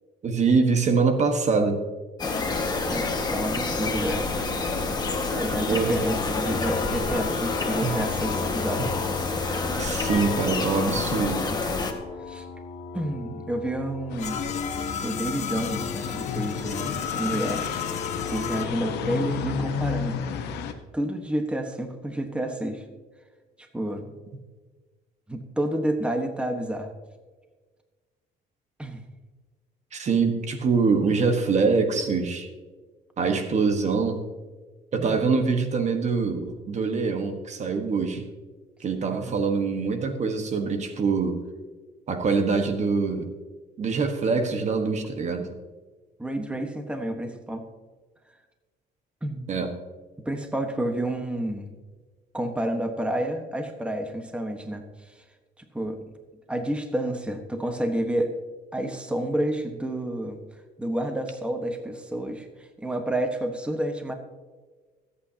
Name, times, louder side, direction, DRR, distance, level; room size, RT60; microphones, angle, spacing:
voice 1, 0.2-1.8 5.7-6.0 7.8-7.9 8.8-8.9 9.8-11.5 29.9-32.5 33.2-34.2 34.9-38.3 38.8-41.4 42.1-43.3 43.8-45.5 49.5-49.7, right 4 dB, 45° right, 6 dB, 1.5 m, -24 dB
sound 1, 2.2-11.9, left 3 dB, 25° left, 1.7 m, -28 dB
voice 2, 2.9-4.5 5.3-8.9 11.5-11.6 12.3-12.4 12.9-14.5 15.0-17.8 18.3-20.2 20.9-22.8 23.6-24.1 25.3-26.9 28.8-29.0 34.9-35.3 39.1-39.4 46.2-47.6 49.2-49.5 50.2-51.7 52.3-55.1 55.7-56.0 56.5-58.3 58.7-60.4 60.8-64.1, right 1 dB, 5° right, 5 dB, 1.4 m, -30 dB
sound 2, 6.4-18.7, left 6 dB, 45° left, 1.5 m, -34 dB
sound 3, 14.1-20.7, left 6 dB, 80° left, 1.3 m, -32 dB
24.0 x 8.5 x 2.9 m, 1.4 s
cardioid pair, 110°, 17 cm